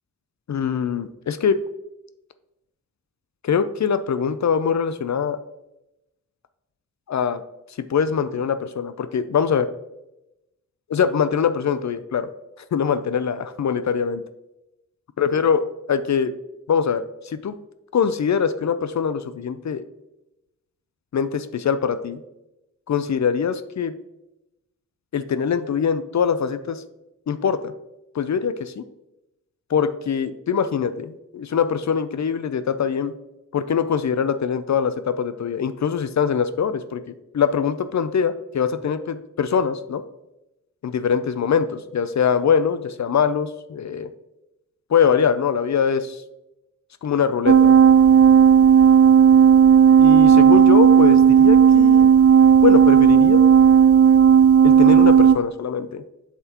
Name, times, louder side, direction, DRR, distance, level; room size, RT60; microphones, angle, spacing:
voice 1, 0.5-1.6 3.4-5.4 7.1-7.4 7.9-9.7 10.9-12.3 12.7-14.2 15.2-16.3 16.7-17.5 17.9-19.8 21.1-22.2 22.9-23.9 25.1-26.8 27.3-27.7 28.1-28.8 29.7-33.1 33.5-37.0 37.3-40.0 40.8-44.1 44.9-46.2 47.0-47.8 50.0-52.1 52.6-53.4 54.6-56.0, left 7 dB, 60° left, 12 dB, 0.5 m, -22 dB
sound 1, 47.5-55.4, right 8 dB, 50° right, 0.4 m, -12 dB
7.7 x 5.9 x 2.9 m, 0.92 s
wide cardioid pair, 70°, 32 cm